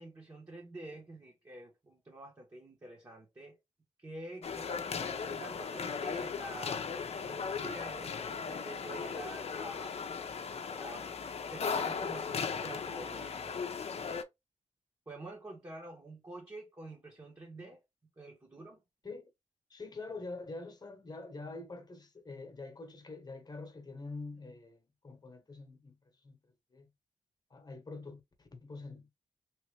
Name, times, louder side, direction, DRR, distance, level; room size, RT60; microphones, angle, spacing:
voice 1, 0.0-3.6 4.0-6.9 7.2-10.0 10.7-11.1 11.5-13.6 15.1-17.8 18.2-18.8, right 2 dB, 25° right, 1.2 m, -48 dB
sound 1, 4.4-14.2, left 5 dB, 55° left, 0.6 m, -37 dB
voice 2, 19.7-26.0 26.2-26.4 26.7-26.9 27.5-29.1, left 3 dB, 30° left, 1.1 m, -45 dB
3.2 x 2.9 x 3.2 m
cardioid pair, 80°, 13 cm